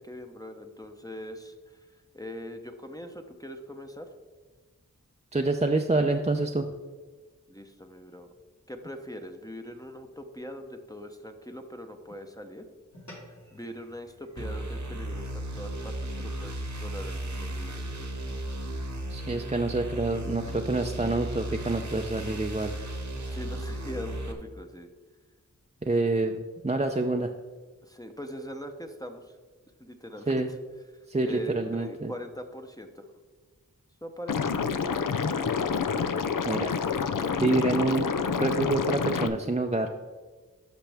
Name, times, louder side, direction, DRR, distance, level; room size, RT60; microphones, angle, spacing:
voice 1, 0.0-1.8 2.1-4.1 7.5-8.3 8.7-12.7 13.3-18.0 23.3-24.9 27.8-29.2 29.8-30.4 31.2-33.1 34.0-35.4, equal, 10° left, 4 dB, 0.7 m, -41 dB
voice 2, 5.3-6.7 19.1-22.7 25.8-27.3 30.3-30.5 31.1-32.1 36.4-36.7 37.4-38.1 38.4-39.9, right 2 dB, 20° right, 3 dB, 0.5 m, -27 dB
sound 1, 12.9-17.6, left 1 dB, 60° left, 2.3 m, -54 dB
sound 2, 14.4-24.3, right 1 dB, 60° right, 1.1 m, -35 dB
Liquid, 34.3-39.3, left 5 dB, 75° left, 0.5 m, -28 dB
11.5 x 6.1 x 3.5 m, 1.4 s
wide cardioid pair, 45°, 32 cm